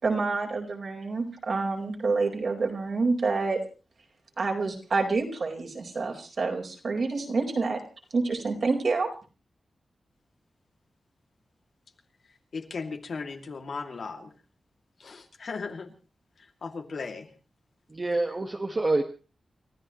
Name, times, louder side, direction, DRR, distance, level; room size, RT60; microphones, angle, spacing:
voice 1, 0.0-3.6 4.4-7.8 8.1-9.1, right 3 dB, 55° right, 0 dB, 4.6 m, -28 dB
voice 2, 12.5-14.3 15.0-15.9 16.6-17.3, left 4 dB, 65° left, 3 dB, 2.6 m, -36 dB
voice 3, 17.9-19.0, right 2 dB, 30° right, 1 dB, 1.7 m, -26 dB
29.5 x 14.5 x 3.2 m, 0.34 s
wide cardioid pair, 120°, 0 cm